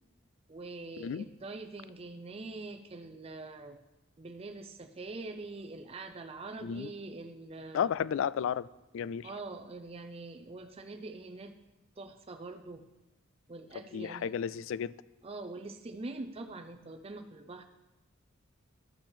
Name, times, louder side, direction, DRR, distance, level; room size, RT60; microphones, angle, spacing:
voice 1, 0.5-3.8 4.2-7.9 9.2-11.5 12.0-12.8 13.5-14.3 15.2-17.6, right 3 dB, 30° right, 0.5 m, -44 dB
voice 2, 7.7-8.7 8.9-9.3 13.9-14.9, left 8 dB, 65° left, 0.3 m, -32 dB
11.5 x 8.0 x 4.4 m
head